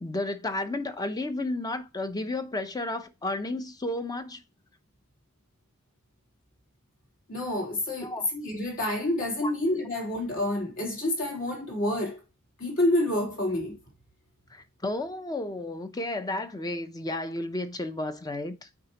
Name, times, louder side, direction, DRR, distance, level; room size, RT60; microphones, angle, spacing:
voice 1, 0.0-4.4 8.0-8.3 9.4-9.5 14.5-18.7, left 2 dB, 15° left, 0.6 m, -32 dB
voice 2, 7.3-12.2 12.6-13.7, left 1 dB, 60° left, 3.5 m, -28 dB
8.3 x 4.9 x 2.9 m
head